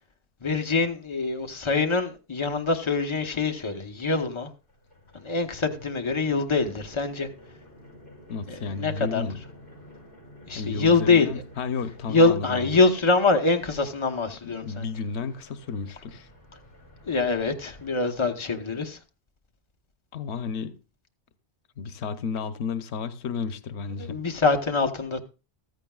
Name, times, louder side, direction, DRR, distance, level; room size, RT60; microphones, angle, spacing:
voice 1, 0.4-4.5 5.1-7.3 8.5-9.3 10.5-11.4 12.1-14.9 17.1-19.0 24.0-25.2, left 3 dB, 30° left, 1.0 m, -24 dB
sound 1, 3.9-4.1 4.5-17.9, left 1 dB, 50° left, 4.6 m, -50 dB
voice 2, 8.3-9.4 10.5-12.8 14.4-16.3 20.1-20.8 21.8-24.2, left 5 dB, 90° left, 1.0 m, -32 dB
15.0 x 13.5 x 2.3 m
omnidirectional pair, 1.1 m